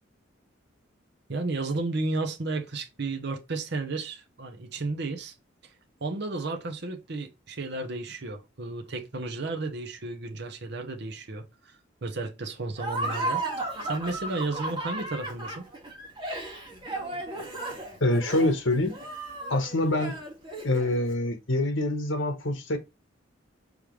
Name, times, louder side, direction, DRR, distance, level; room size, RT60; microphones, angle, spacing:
voice 1, 1.3-5.3 5.6-5.7 6.0-15.7, right 3 dB, 60° right, 0.9 m, -33 dB
Laughter, 12.8-21.1, right 2 dB, 25° right, 1.9 m, -34 dB
voice 2, 18.0-19.0 19.5-20.2 20.6-22.8, left 1 dB, 70° left, 1.2 m, -25 dB
5.0 x 3.3 x 3.1 m
head